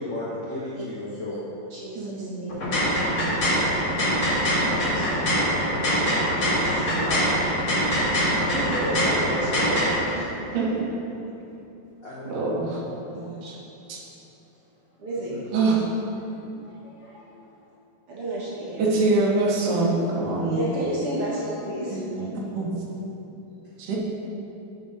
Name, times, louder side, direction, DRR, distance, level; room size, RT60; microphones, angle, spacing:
voice 1, 0.0-1.4 6.9-7.3 12.0-12.6 13.0-13.1 15.3-15.5 16.6-17.1, left 1 dB, 75° left, -8 dB, 1.0 m, -34 dB
voice 2, 0.7-1.2 1.7-4.0 4.3-7.5 8.5-10.7 13.1-13.6 15.0-15.4 16.3-16.7 17.1-17.5 18.1-19.1 20.4-22.1 22.5-22.8 23.1-23.8, right 1 dB, 55° right, -6 dB, 1.8 m, -34 dB
voice 3, 2.0-2.5 10.5-10.8 12.3-12.8 13.1-13.5 13.9-14.0 15.5-15.8 18.8-20.6 21.9-22.7 23.8-24.0, right 3 dB, 75° right, -3 dB, 2.4 m, -25 dB
sound 1, 2.5-9.9, equal, 45° left, 1.2 m, -23 dB
9.0 x 5.4 x 5.3 m, 2.9 s
omnidirectional pair, 4.1 m